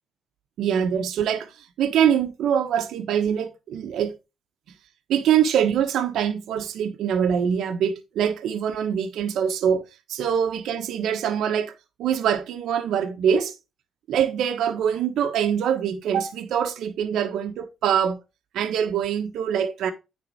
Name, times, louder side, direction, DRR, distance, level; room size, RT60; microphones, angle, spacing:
voice 1, 0.6-1.5 1.8-4.1 5.1-9.8 10.1-11.7 12.0-13.5 14.1-18.2 18.5-19.9, right 8 dB, 80° right, 1.2 m, -24 dB
9.7 x 4.2 x 4.6 m
cardioid pair, 90°, 0 cm